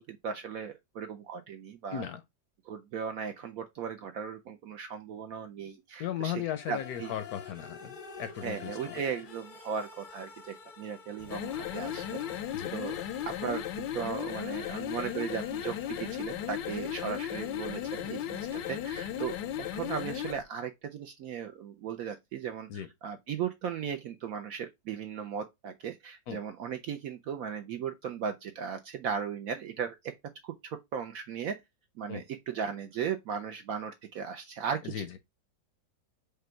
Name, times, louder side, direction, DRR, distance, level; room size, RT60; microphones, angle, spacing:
voice 1, 0.0-2.1 2.7-7.1 8.4-12.1 12.7-13.0 13.2-30.1 30.4-31.6 32.0-35.2, right 7 dB, 70° right, 0.8 m, -37 dB
voice 2, 6.0-8.9 12.5-12.7 22.7-22.9 26.3-26.4 32.1-32.2 34.8-35.1, left 10 dB, 70° left, 0.9 m, -36 dB
sound 1, 6.5-20.4, left 6 dB, 55° left, 0.6 m, -49 dB
sound 2, 11.2-20.4, left 11 dB, 90° left, 1.3 m, -36 dB
5.1 x 2.2 x 4.3 m
omnidirectional pair, 1.9 m